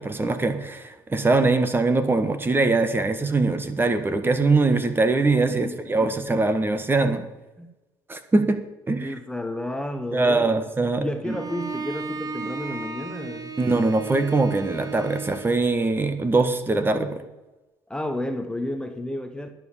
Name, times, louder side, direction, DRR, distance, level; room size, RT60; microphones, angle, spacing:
voice 1, 0.0-7.3 8.1-8.6 8.9-9.1 10.1-11.4 13.6-17.2, right 3 dB, 20° right, 8 dB, 1.6 m, -22 dB
voice 2, 5.5-6.4 7.6-7.7 9.0-10.5 11.0-13.6 17.9-19.5, left 1 dB, 10° left, 7 dB, 1.2 m, -32 dB
Bowed string instrument, 11.2-15.7, right 4 dB, 40° right, 1.8 m, -35 dB
11.0 x 7.5 x 7.3 m, 1.1 s
supercardioid pair, 75°, 10 cm